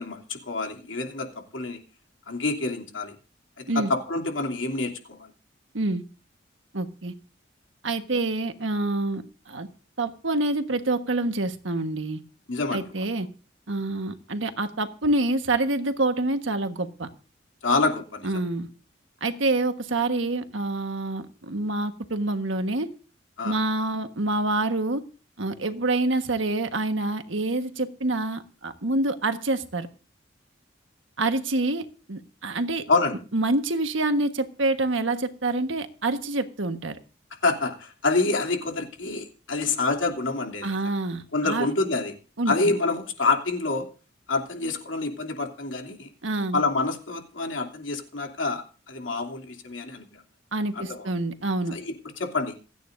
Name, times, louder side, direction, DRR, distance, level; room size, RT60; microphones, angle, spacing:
voice 1, 0.0-1.8 2.3-3.1 3.6-5.3 12.5-13.0 17.6-18.4 23.4-23.5 32.9-33.2 37.4-40.8 41.3-42.1 42.5-43.9 44.3-46.1 46.5-50.2 50.7-51.1 51.7-52.5, left 3 dB, 85° left, 3 dB, 2.9 m, -27 dB
voice 2, 6.7-7.1 7.8-9.7 10.0-12.2 12.7-13.3 13.7-17.1 18.2-18.7 19.2-22.9 23.4-25.0 25.4-29.9 31.2-32.8 33.3-37.0 40.6-41.7 42.4-42.5 46.2-46.6 50.5-51.8, right 2 dB, 85° right, 8 dB, 1.4 m, -27 dB
27.0 x 9.3 x 2.6 m, 0.36 s
head